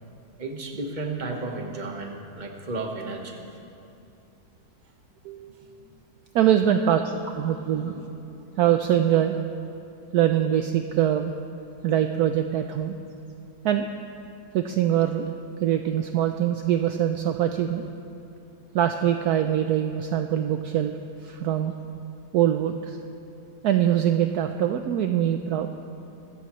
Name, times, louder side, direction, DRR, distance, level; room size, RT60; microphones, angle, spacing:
voice 1, 0.4-3.4 5.6-5.9 6.8-7.0 7.4-8.0, right 3 dB, 25° right, 2 dB, 1.3 m, -34 dB
voice 2, 6.3-7.0 7.4-7.9 8.6-9.4 10.1-11.4 11.8-13.0 13.6-13.9 14.5-15.3 15.6-17.9 18.7-21.0 21.2-21.7 22.3-23.0 23.6-25.7, right 10 dB, 70° right, 6 dB, 1.0 m, -23 dB
24.5 x 14.5 x 3.1 m, 2.8 s
omnidirectional pair, 2.0 m